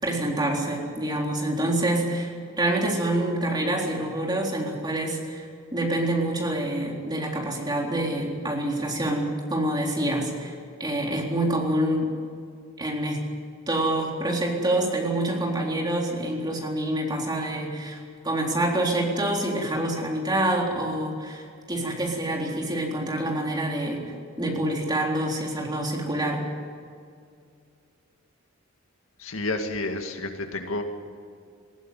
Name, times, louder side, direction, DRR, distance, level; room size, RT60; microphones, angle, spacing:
voice 1, 0.0-12.1 12.8-13.2 13.7-18.0 18.2-24.0 24.4-26.4, right 1 dB, 20° right, -1 dB, 3.8 m, -26 dB
voice 2, 29.2-30.8, left 2 dB, 75° left, 4 dB, 2.2 m, -30 dB
20.0 x 16.0 x 9.3 m, 2.3 s
head